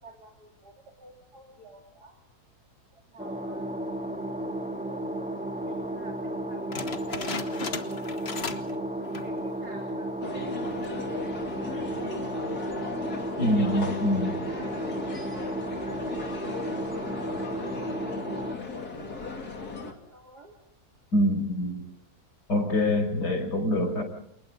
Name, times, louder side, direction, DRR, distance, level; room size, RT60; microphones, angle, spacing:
voice 1, 0.0-0.7 1.0-2.2 2.9-3.7 4.6-8.1 8.4-10.1 10.4-13.0 13.8-16.5 17.2-18.1 18.4-20.5, right 2 dB, 75° right, 1 dB, 4.0 m, -50 dB
sound 1, 3.2-18.6, right 1 dB, 5° right, 1.5 m, -33 dB
sound 2, 6.7-8.8 9.0-9.4 9.9-10.0 10.7-11.0, left 4 dB, 40° left, 1.6 m, -36 dB
sound 3, 10.2-19.9, left 3 dB, 70° left, 3.2 m, -37 dB
voice 2, 13.4-14.4 21.1-21.8 22.5-24.0, left 1 dB, 90° left, 4 dB, 6.3 m, -25 dB
29.0 x 28.5 x 3.9 m, 0.71 s
omnidirectional pair, 1.7 m